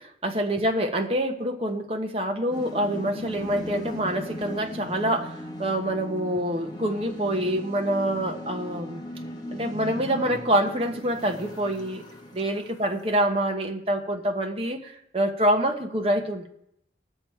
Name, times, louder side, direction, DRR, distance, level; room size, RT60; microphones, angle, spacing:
voice 1, 0.0-9.0 9.5-12.0 12.3-16.5, right 1 dB, 35° right, 3 dB, 1.1 m, -26 dB
sound 1, 2.5-13.2, left 1 dB, 25° left, 1.2 m, -38 dB
19.0 x 7.0 x 4.6 m, 0.78 s
head